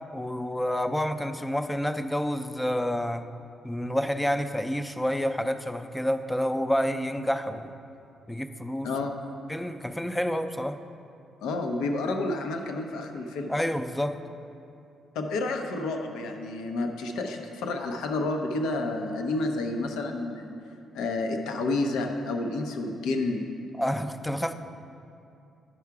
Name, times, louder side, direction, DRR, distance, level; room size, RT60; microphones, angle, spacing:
voice 1, 0.1-3.3 3.6-7.8 8.3-8.9 9.5-10.8 13.5-14.2 23.8-24.5, equal, 10° left, 9 dB, 0.4 m, -28 dB
voice 2, 11.4-13.5 15.1-20.5 20.9-23.4, left 2 dB, 90° left, 4 dB, 0.7 m, -30 dB
9.7 x 5.7 x 4.7 m, 2.6 s
cardioid pair, 90°, 0 cm